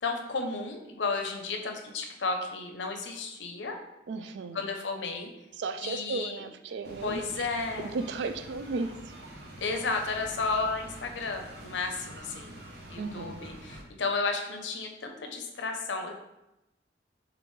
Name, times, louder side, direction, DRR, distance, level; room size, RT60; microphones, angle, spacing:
voice 1, 0.0-3.8 4.5-5.3 5.8-6.5 7.0-8.0 9.6-12.6 12.9-16.1, left 4 dB, 80° left, 4 dB, 0.6 m, -33 dB
voice 2, 4.1-4.6 5.6-7.5 7.9-9.1 13.0-13.4, right 3 dB, 80° right, 9 dB, 0.3 m, -35 dB
sound 1, 6.8-13.8, right 1 dB, 60° right, 0.7 m, -46 dB
6.7 x 2.5 x 3.1 m, 0.92 s
head